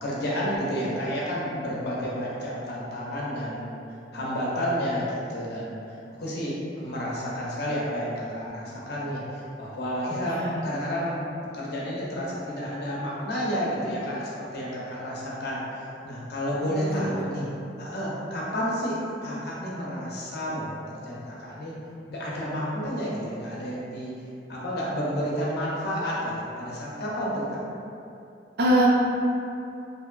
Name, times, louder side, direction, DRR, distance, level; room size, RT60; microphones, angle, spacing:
voice 1, 0.0-3.8 4.1-17.5 17.8-21.7 22.1-24.2 24.5-27.6, equal, 60° left, -6 dB, 0.6 m, -30 dB
voice 2, 10.1-10.6 16.6-17.2 28.6-28.9, right 1 dB, 60° right, -3 dB, 0.4 m, -25 dB
2.7 x 2.2 x 2.3 m, 2.7 s
head